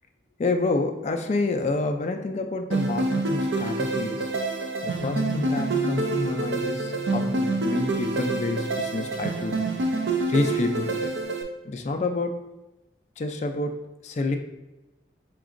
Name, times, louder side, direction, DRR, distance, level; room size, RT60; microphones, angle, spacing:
voice 1, 0.4-4.3 4.8-9.7 10.3-11.1 11.6-12.5 13.2-14.4, left 2 dB, 40° left, 4 dB, 0.3 m, -28 dB
sound 1, 2.7-11.4, right 2 dB, 65° right, 0.5 m, -27 dB
Bass guitar, 5.0-9.4 10.1-11.2, left 2 dB, 90° left, 0.6 m, -37 dB
5.0 x 3.8 x 2.5 m, 1.0 s
head